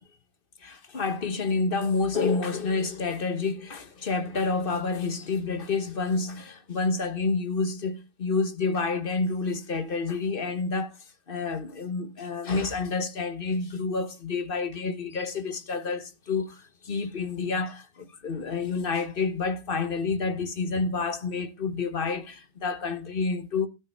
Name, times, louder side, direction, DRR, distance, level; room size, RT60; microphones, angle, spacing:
voice 1, 0.6-11.0 11.3-23.7, left 4 dB, 55° left, 1.3 m, -29 dB
13.0 x 8.8 x 4.4 m
omnidirectional pair, 1.1 m